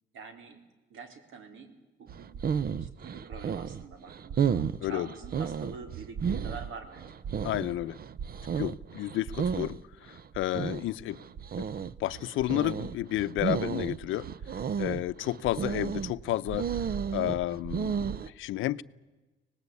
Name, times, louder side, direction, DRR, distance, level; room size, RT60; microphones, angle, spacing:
voice 1, 0.1-0.6 0.9-1.7 2.0-2.3 2.8-7.7 11.3-11.4, right 5 dB, 80° right, 7 dB, 4.1 m, -46 dB
sound 1, 2.1-18.3, right 7 dB, 50° right, 0.8 m, -33 dB
voice 2, 7.4-7.9 8.6-9.8 10.1-11.2 12.0-14.3 14.8-16.6 17.1-18.1 18.4-18.8, left 15 dB, 85° left, 15 dB, 0.7 m, -31 dB
25.0 x 19.0 x 8.5 m, 1.2 s
cardioid pair, 90°, 20 cm